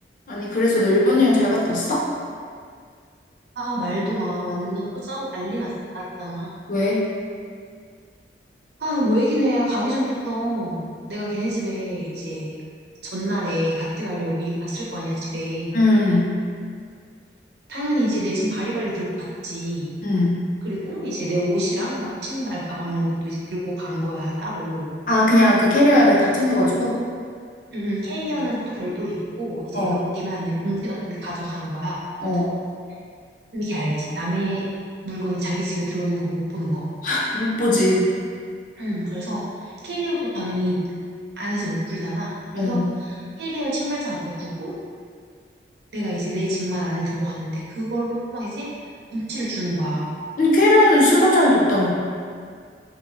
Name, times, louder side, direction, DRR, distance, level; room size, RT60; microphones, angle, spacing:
voice 1, 0.3-2.1 6.7-7.0 15.7-16.3 20.0-20.4 25.1-27.0 29.7-30.0 32.2-32.5 37.0-38.1 42.6-42.9 50.4-51.9, left 1 dB, 50° left, -4 dB, 0.6 m, -18 dB
voice 2, 3.6-6.5 8.8-12.5 13.1-15.7 17.7-19.9 20.6-24.9 27.7-32.5 33.5-34.6 35.0-36.9 38.8-40.8 41.4-44.7 45.9-48.7 49.1-50.1, equal, 70° right, -5 dB, 0.8 m, -27 dB
3.0 x 3.0 x 2.5 m, 2.1 s
head